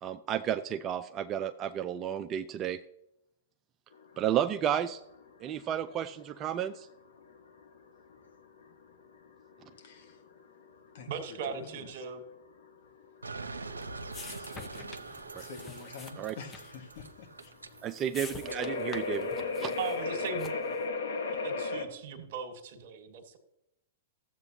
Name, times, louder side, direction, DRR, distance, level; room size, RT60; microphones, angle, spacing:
voice 1, 0.0-2.8 4.2-5.0 5.4-6.9 15.3-15.4 16.2-16.3 17.8-19.3 19.6-19.7, right 9 dB, 30° right, 9 dB, 0.4 m, -32 dB
sound 1, 3.9-21.8, left 3 dB, 75° left, 1.3 m, -38 dB
voice 2, 9.8-10.2 10.9-11.9 14.2-15.0 15.4-17.5, left 5 dB, 60° left, 4 dB, 1.6 m, -48 dB
voice 3, 11.1-12.2 19.8-20.5 21.4-23.4, right 6 dB, 55° right, 7 dB, 1.5 m, -38 dB
sound 2, 13.2-18.6, right 3 dB, 90° right, 0.7 m, -44 dB
sound 3, 13.4-20.8, left 4 dB, 20° left, 0.9 m, -49 dB
14.5 x 7.8 x 2.8 m, 0.83 s
hypercardioid pair, 110°, 0 cm